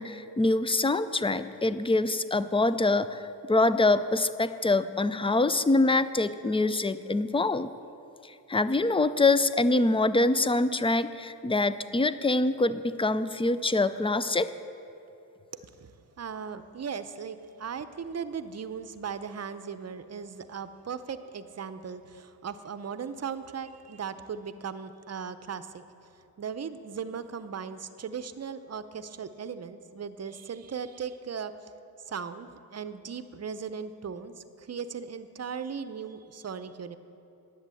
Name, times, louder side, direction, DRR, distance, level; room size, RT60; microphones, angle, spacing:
voice 1, 0.0-7.7 8.5-14.5, left 2 dB, 15° left, 14 dB, 0.4 m, -25 dB
voice 2, 15.6-25.8 26.1-31.7 32.1-37.0, right 6 dB, 40° right, 12 dB, 0.7 m, -38 dB
10.5 x 8.0 x 7.7 m, 2.9 s
cardioid pair, 70°, 40 cm